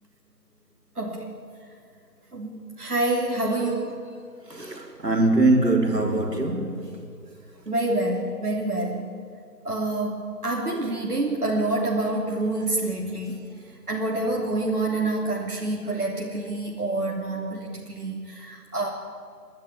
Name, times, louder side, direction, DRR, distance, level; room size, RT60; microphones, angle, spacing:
voice 1, 0.9-1.5 2.3-4.0 7.6-9.2 9.6-13.4 13.9-18.9, right 2 dB, 60° right, 3.3 m, -27 dB
voice 2, 4.5-7.1, right 2 dB, 80° right, 4.0 m, -22 dB
29.0 x 11.0 x 9.7 m
figure-of-eight pair, 175°, 49 cm